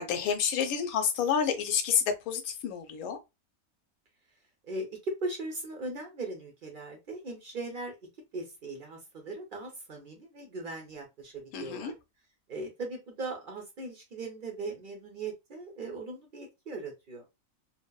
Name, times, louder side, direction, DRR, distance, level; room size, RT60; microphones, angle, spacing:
voice 1, 0.0-3.2 11.5-11.9, left 7 dB, 90° left, 1.0 m, -29 dB
voice 2, 4.6-8.0 8.3-11.9 12.5-17.2, right 2 dB, 50° right, 0.6 m, -39 dB
2.8 x 2.0 x 2.2 m
omnidirectional pair, 1.5 m